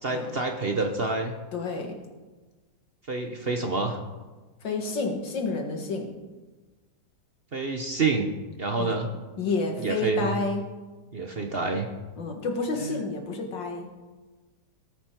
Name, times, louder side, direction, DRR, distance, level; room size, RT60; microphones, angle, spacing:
voice 1, 0.0-1.3 3.1-4.0 7.5-8.3 8.6-9.1 9.8-10.4 11.1-11.9 12.8-12.9, right 3 dB, 40° right, 4 dB, 0.9 m, -27 dB
voice 2, 1.5-2.0 4.6-6.1 8.8-8.9 9.4-10.6 12.2-13.9, left 3 dB, 85° left, 3 dB, 2.4 m, -29 dB
19.0 x 8.3 x 4.5 m, 1.2 s
omnidirectional pair, 1.9 m